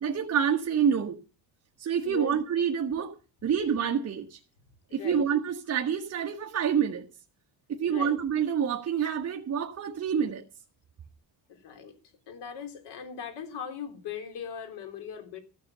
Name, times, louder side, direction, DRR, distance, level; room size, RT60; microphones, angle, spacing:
voice 1, 0.0-1.2 1.8-3.1 3.4-4.4 4.9-7.0 7.7-10.4, right 8 dB, 40° right, 1.4 m, -27 dB
voice 2, 4.9-5.2 7.8-8.2 11.6-12.0 12.3-15.4, left 7 dB, 90° left, 3.6 m, -39 dB
15.0 x 6.7 x 7.9 m
cardioid pair, 135°, 39 cm